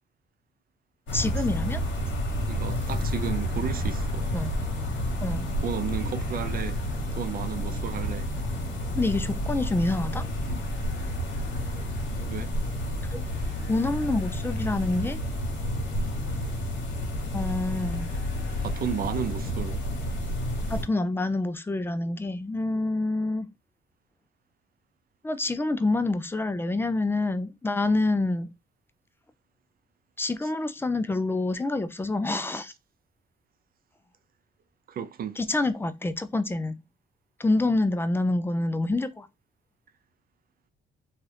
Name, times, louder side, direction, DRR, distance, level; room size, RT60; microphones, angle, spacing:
sound 1, 1.1-20.8, equal, 70° left, 1.2 m, -30 dB
voice 1, 1.1-1.8 4.3-4.5 5.2-5.5 9.0-10.2 13.1-13.2 13.7-15.2 17.3-18.1 20.7-23.5 25.2-28.5 30.2-32.7 35.4-36.8 37.4-39.3, left 2 dB, 10° left, 0.4 m, -27 dB
voice 2, 2.5-4.3 5.6-6.8 7.2-8.3 12.3-12.6 18.6-19.8 32.5-32.6 34.9-35.4, right 8 dB, 50° right, 0.4 m, -33 dB
2.7 x 2.4 x 3.3 m
cardioid pair, 90°, 20 cm